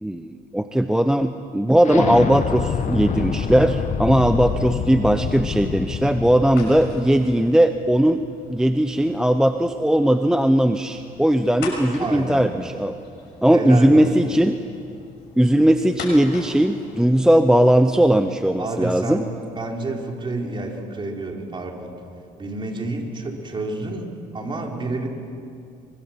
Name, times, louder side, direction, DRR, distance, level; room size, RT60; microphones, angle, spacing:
voice 1, 0.0-8.2 8.5-13.0 13.4-14.6 15.4-19.2, right 1 dB, 5° right, 8 dB, 0.7 m, -18 dB
Explosion, 1.8-7.4, left 6 dB, 45° left, 1.3 m, -26 dB
sound 1, 4.4-18.6, left 3 dB, 85° left, 6.2 m, -42 dB
voice 2, 12.0-12.5 13.5-14.3 18.6-21.9 22.4-24.1 24.3-25.1, right 2 dB, 30° right, 0 dB, 4.1 m, -29 dB
24.0 x 23.5 x 7.4 m, 2.5 s
cardioid pair, 110°, 17 cm